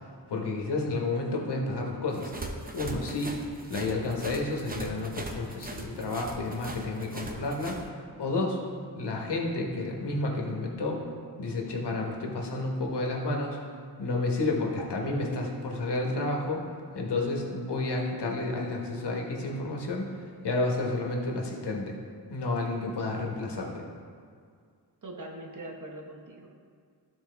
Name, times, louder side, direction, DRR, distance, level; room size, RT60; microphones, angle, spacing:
voice 1, 0.3-2.3 2.7-3.4 3.7-8.6 8.9-11.0 11.4-13.6 14.0-16.6 16.9-20.1 20.4-22.0 22.3-23.9, left 2 dB, 75° left, 0 dB, 1.2 m, -31 dB
sound 1, 2.1-7.8, right 2 dB, 20° right, 0.7 m, -40 dB
voice 2, 25.0-26.5, right 1 dB, 45° right, 2 dB, 1.0 m, -42 dB
12.5 x 4.2 x 3.4 m, 2.1 s
wide cardioid pair, 100°, 41 cm